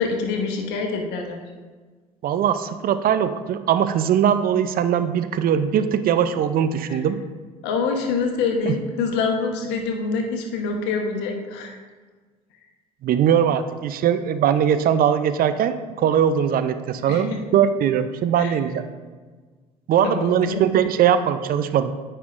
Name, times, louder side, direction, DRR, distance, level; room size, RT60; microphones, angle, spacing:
voice 1, 0.0-1.4 7.6-11.8 17.1-17.4 18.4-18.5 20.0-20.6, left 4 dB, 75° left, 3 dB, 1.1 m, -25 dB
voice 2, 2.2-7.2 8.7-8.8 13.0-18.9 19.9-21.9, right 9 dB, 55° right, 11 dB, 0.5 m, -20 dB
9.4 x 5.7 x 2.5 m, 1.4 s
hypercardioid pair, 65°, 18 cm